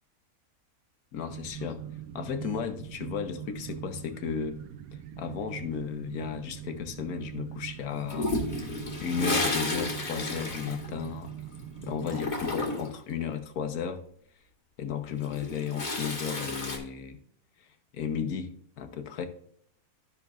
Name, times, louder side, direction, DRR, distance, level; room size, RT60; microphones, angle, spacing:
voice 1, 1.1-1.8 2.1-4.6 5.2-8.7 9.0-11.3 11.8-14.0 14.8-17.2 17.6-17.7 17.9-19.3, left 7 dB, 80° left, 8 dB, 1.4 m, -34 dB
sound 1, 1.3-12.5, right 10 dB, 75° right, 1.1 m, -42 dB
Toilet flush, 8.1-11.6 11.8-13.0 15.0-16.8, left 2 dB, 30° left, 1.6 m, -32 dB
13.0 x 6.0 x 2.4 m, 0.65 s
omnidirectional pair, 1.6 m